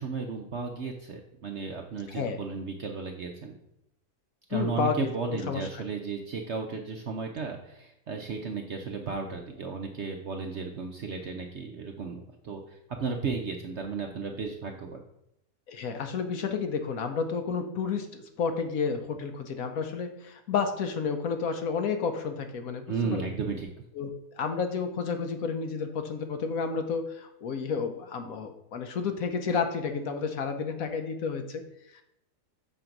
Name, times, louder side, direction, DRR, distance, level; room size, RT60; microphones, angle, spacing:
voice 1, 0.0-3.6 4.5-15.0 22.9-23.7, right 5 dB, 55° right, 3 dB, 0.8 m, -34 dB
voice 2, 2.1-2.4 4.5-5.8 15.7-23.3 23.9-24.1 24.4-31.6 31.9-32.0, left 5 dB, 65° left, 6 dB, 1.1 m, -31 dB
6.7 x 3.9 x 5.9 m, 0.80 s
omnidirectional pair, 1.8 m